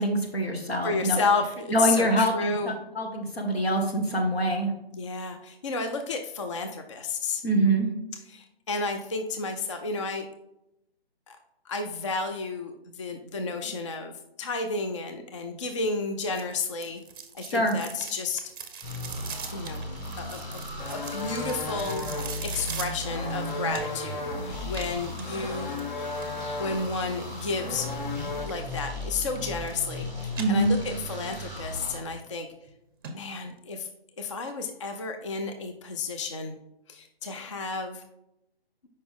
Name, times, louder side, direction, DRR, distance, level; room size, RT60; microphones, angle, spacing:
voice 1, 0.0-1.2 1.7-4.7 7.4-7.9 17.4-17.8 30.4-30.8, right 1 dB, 75° left, 3 dB, 1.6 m, -25 dB
voice 2, 0.8-2.8 4.9-7.4 8.3-10.3 11.3-11.4 11.7-17.0 17.3-18.4 19.5-19.8 20.2-22.1 22.4-25.8 26.6-27.9 28.4-32.5 33.1-33.9 34.2-36.6 36.9-38.0, left 4 dB, 30° left, 5 dB, 0.4 m, -32 dB
sound 1, 16.3-24.1 24.7-26.4 28.4-28.9 29.2-30.0 30.3-31.2 31.6-31.7 32.3-32.4 32.7-32.8 33.0-33.1 33.5-33.6, right 6 dB, 20° right, 0.6 m, -41 dB
sound 2, 18.8-32.0, left 1 dB, 15° left, 0.9 m, -37 dB
sound 3, 20.8-28.5, left 2 dB, 50° left, 1.0 m, -36 dB
5.7 x 5.1 x 3.6 m, 0.85 s
figure-of-eight pair, 145°, 31 cm